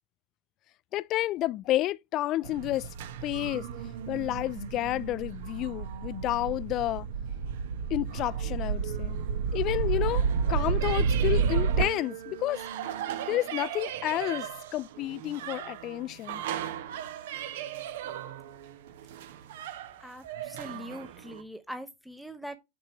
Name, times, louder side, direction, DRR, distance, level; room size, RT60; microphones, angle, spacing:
voice 1, 0.9-2.9 3.2-3.7 4.1-7.1 7.9-9.2 9.5-12.6 13.3-16.4, left 15 dB, 40° left, 0.3 m, -30 dB
sound 1, 2.4-21.4, right 6 dB, 65° right, 1.0 m, -32 dB
voice 2, 20.0-22.6, equal, ahead, 0.7 m, -42 dB
7.3 x 4.7 x 3.0 m
hypercardioid pair, 115°, 0 cm